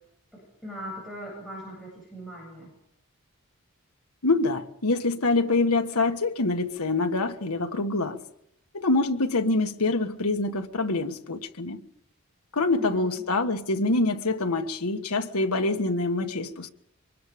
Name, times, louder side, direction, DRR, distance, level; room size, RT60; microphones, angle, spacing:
voice 1, 0.3-2.7 12.7-13.2, equal, ahead, 7.9 m, -40 dB
voice 2, 4.2-8.2 8.7-11.8 12.5-16.7, left 3 dB, 90° left, 1.5 m, -25 dB
24.5 x 20.5 x 5.1 m
head